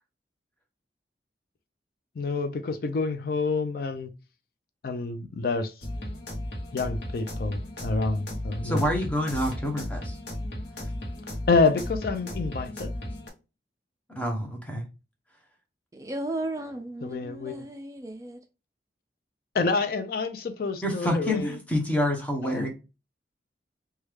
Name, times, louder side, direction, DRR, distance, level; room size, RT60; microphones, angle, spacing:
voice 1, 2.2-4.1 4.8-5.7 6.7-8.8 11.5-12.9 17.0-17.6 19.5-21.6 22.4-22.6, left 4 dB, 55° left, 0.4 m, -27 dB
sound 1, 5.8-13.3, left 1 dB, 80° left, 0.9 m, -35 dB
voice 2, 8.6-10.2 14.1-14.8 20.8-22.7, left 1 dB, 10° left, 0.7 m, -27 dB
voice 3, 15.9-18.4, right 1 dB, 20° right, 0.3 m, -35 dB
3.1 x 2.3 x 3.2 m
head